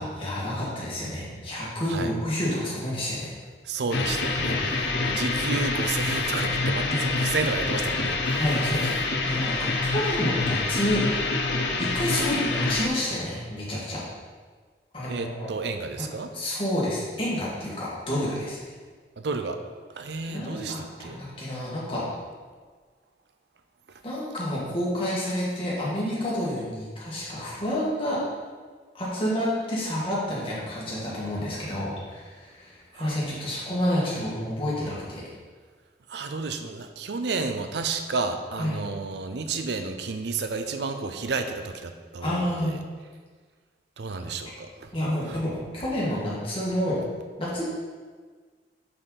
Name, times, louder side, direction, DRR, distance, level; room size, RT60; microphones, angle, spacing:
voice 1, 0.0-3.3 4.4-4.7 6.9-7.3 8.4-9.0 9.3-11.3 11.8-14.0 14.9-15.5 16.0-16.1 16.3-18.6 20.3-22.0 24.0-28.2 28.9-35.2 38.6-38.8 42.2-42.8 44.9-47.0 47.4-47.7, left 1 dB, 30° left, -7 dB, 1.8 m, -29 dB
voice 2, 3.6-8.6 15.1-16.3 19.2-19.6 19.9-21.2 32.9-33.2 36.1-42.8 44.0-44.9 45.3-45.4, right 4 dB, 75° right, 7 dB, 0.5 m, -31 dB
sound 1, 3.9-12.9, left 3 dB, 80° left, 0.7 m, -26 dB
5.5 x 5.4 x 4.1 m, 1.5 s
head